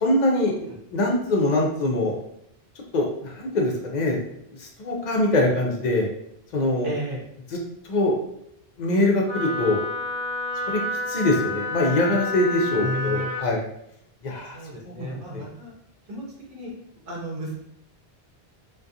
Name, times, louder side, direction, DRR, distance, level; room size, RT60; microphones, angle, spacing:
voice 1, 0.0-2.1 2.9-4.2 4.6-6.1 6.5-6.9 7.8-8.2 8.8-9.8 10.7-10.8 11.1-13.6 14.2-14.6 14.8-15.4, left 1 dB, 55° left, 0 dB, 0.5 m, -23 dB
voice 2, 6.8-7.2 12.8-13.4 14.5-15.7 16.1-16.2 16.5-16.7 17.0-17.6, equal, 60° right, -3 dB, 0.9 m, -33 dB
Wind instrument woodwind instrument, 9.3-13.4, left 2 dB, 20° right, 0.6 m, -29 dB
2.3 x 2.2 x 2.7 m, 0.74 s
omnidirectional pair, 1.0 m